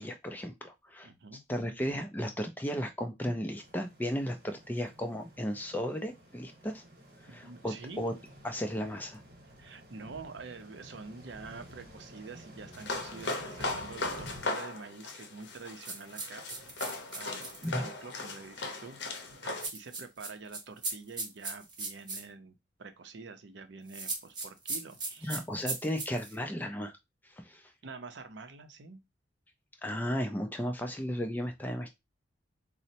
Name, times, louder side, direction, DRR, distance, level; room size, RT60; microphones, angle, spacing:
voice 1, 0.0-1.1 1.5-6.8 7.2-8.1 8.4-9.2 17.6-17.9 25.2-26.9 27.2-27.7 29.8-31.9, equal, 10° left, 0.3 m, -35 dB
voice 2, 1.0-1.4 7.3-8.1 9.6-19.0 19.4-25.4 27.8-29.0, right 4 dB, 65° right, 0.5 m, -47 dB
sound 1, 3.5-14.5, equal, 50° right, 1.0 m, -52 dB
sound 2, 12.7-19.7, left 2 dB, 60° left, 0.7 m, -38 dB
sound 3, 15.8-17.7 19.6-22.2 23.9-26.3, right 3 dB, 20° right, 0.7 m, -38 dB
4.1 x 2.0 x 2.7 m
head